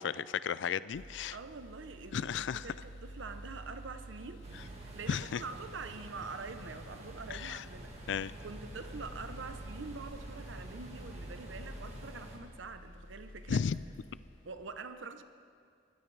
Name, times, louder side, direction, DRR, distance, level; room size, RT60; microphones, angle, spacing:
voice 1, 0.0-1.4 2.1-2.7 5.1-5.4 7.3-7.6 8.1-8.3 13.5-13.8, left 7 dB, 65° left, 17 dB, 0.3 m, -34 dB
sound 1, 0.9-14.7, right 1 dB, 85° left, 2.0 m, -50 dB
voice 2, 1.3-8.1 8.4-13.6 14.4-15.2, right 4 dB, 75° right, 9 dB, 0.8 m, -45 dB
sound 2, 4.4-12.4, equal, 35° right, 1.9 m, -49 dB
23.5 x 15.0 x 3.3 m, 2.3 s
head